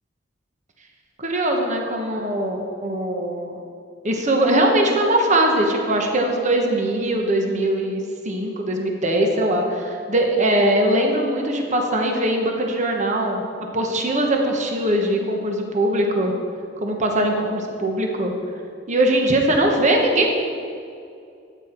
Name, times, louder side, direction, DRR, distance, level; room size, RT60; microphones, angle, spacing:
voice 1, 1.2-3.6 4.0-13.4 13.7-16.3 16.8-18.3 18.9-20.3, right 1 dB, 40° right, 2 dB, 1.3 m, -21 dB
13.0 x 9.3 x 4.5 m, 2.4 s
head